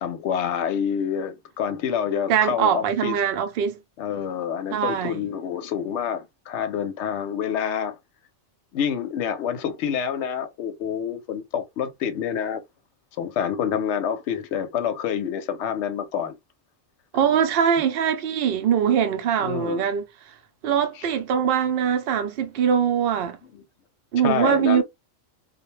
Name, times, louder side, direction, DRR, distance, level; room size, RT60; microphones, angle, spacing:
voice 1, 0.0-3.2 4.0-8.0 8.7-12.6 13.2-16.4 19.4-19.8 23.5-23.6 24.2-24.8, left 8 dB, 70° left, 0.9 m, -27 dB
voice 2, 2.3-3.8 4.7-5.3 17.1-20.0 20.6-23.4 24.1-24.8, right 8 dB, 60° right, 0.7 m, -22 dB
2.3 x 2.1 x 3.0 m
omnidirectional pair, 1.3 m